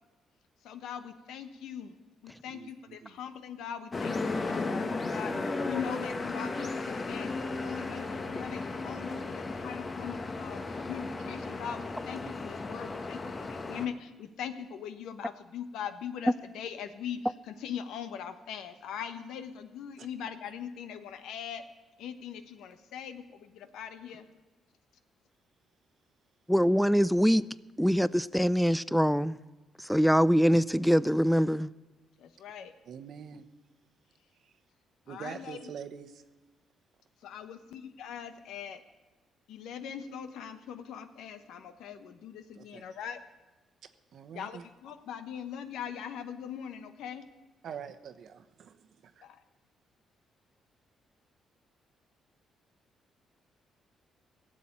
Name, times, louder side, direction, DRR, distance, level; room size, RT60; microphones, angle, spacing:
voice 1, 0.6-2.0 2.2-10.6 10.9-21.6 22.0-24.3 32.2-32.7 35.1-35.7 37.2-38.8 39.5-43.2 44.3-47.2 49.2-49.3, left 8 dB, 85° left, 1.1 m, -41 dB
voice 2, 2.5-3.1 13.5-13.6 20.0-20.1 32.9-33.4 34.4-34.5 35.1-36.2 42.5-42.8 44.1-44.6 47.6-48.9, right 7 dB, 65° right, 1.0 m, -44 dB
sound 1, 3.9-13.9, left 3 dB, 35° left, 1.1 m, -35 dB
voice 3, 26.5-27.5 27.8-29.4 29.8-31.7, equal, ahead, 0.4 m, -24 dB
17.0 x 7.6 x 8.6 m
cardioid pair, 90°, 0 cm